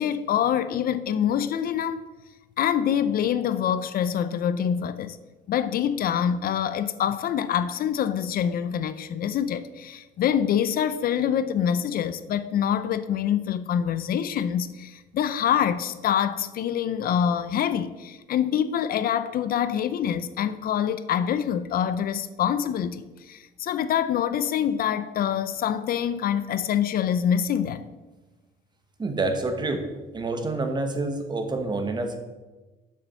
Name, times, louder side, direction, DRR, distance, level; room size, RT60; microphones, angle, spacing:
voice 1, 0.0-2.0 2.6-5.2 5.5-27.8, left 9 dB, 55° left, 0.5 m, -25 dB
voice 2, 29.0-29.9 30.1-32.2, right 2 dB, 25° right, 1.2 m, -27 dB
7.1 x 6.8 x 6.9 m
cardioid pair, 125°, 18 cm